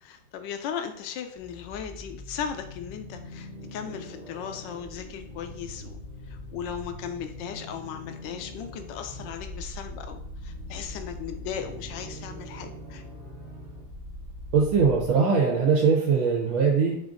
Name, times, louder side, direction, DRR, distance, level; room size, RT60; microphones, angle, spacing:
voice 1, 0.0-6.0 6.3-13.0, left 8 dB, 75° left, 7 dB, 1.2 m, -37 dB
sound 1, 1.4-15.1, left 1 dB, 30° right, 0.7 m, -41 dB
voice 2, 14.5-16.9, right 5 dB, 85° right, -1 dB, 1.5 m, -21 dB
5.1 x 2.5 x 3.6 m, 0.70 s
omnidirectional pair, 2.2 m